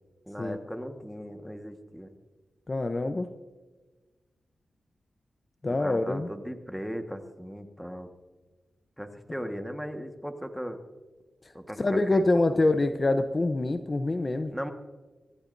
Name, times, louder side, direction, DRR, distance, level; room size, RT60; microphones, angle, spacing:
voice 1, 0.3-2.1 5.8-8.1 9.0-10.8 11.5-12.2 12.5-12.6 14.5-14.7, equal, ahead, 5 dB, 1.5 m, -37 dB
voice 2, 2.7-3.3 5.6-6.3 11.4-11.5 11.8-14.5, left 2 dB, 35° left, 8 dB, 0.8 m, -25 dB
24.5 x 14.5 x 2.7 m, 1.3 s
cardioid pair, 85°, 0 cm